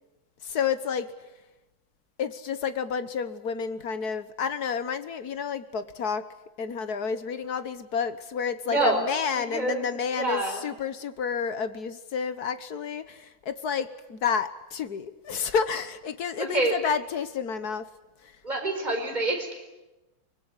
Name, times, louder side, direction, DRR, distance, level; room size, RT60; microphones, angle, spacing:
voice 1, 0.4-1.1 2.2-6.3 6.6-17.9 18.2-18.3, left 6 dB, 50° left, 12 dB, 1.5 m, -30 dB
voice 2, 8.7-9.0 9.3-10.6 16.4-16.8 18.4-19.5, right 2 dB, 20° right, 2 dB, 5.1 m, -27 dB
24.5 x 21.5 x 9.7 m, 1.0 s
omnidirectional pair, 2.3 m